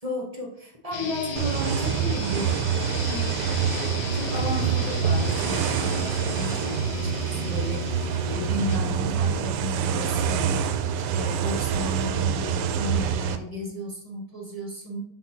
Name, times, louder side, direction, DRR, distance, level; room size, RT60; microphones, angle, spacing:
voice 1, 0.0-2.6 3.1-7.9 8.2-15.0, left 1 dB, 25° right, 0 dB, 0.9 m, -34 dB
sound 1, 0.9-8.9, left 5 dB, 65° left, 0.6 m, -35 dB
sound 2, 1.4-13.4, right 7 dB, 80° right, 1.2 m, -26 dB
5.7 x 4.2 x 4.4 m, 0.72 s
omnidirectional pair, 1.8 m